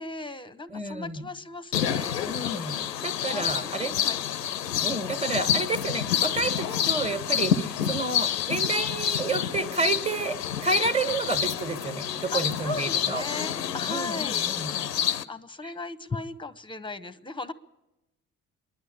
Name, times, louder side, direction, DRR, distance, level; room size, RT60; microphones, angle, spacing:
voice 1, 0.0-2.3 3.3-4.2 12.3-14.5 14.9-17.5, left 3 dB, 10° left, 15 dB, 1.0 m, -37 dB
voice 2, 0.7-1.3 2.3-4.0 4.8-13.2 13.9-14.9 15.6-15.7, right 3 dB, 15° right, 9 dB, 1.6 m, -30 dB
sound 1, 1.7-15.2, left 9 dB, 85° left, 0.6 m, -28 dB
26.5 x 11.5 x 8.7 m, 0.99 s
figure-of-eight pair, 50°, 48 cm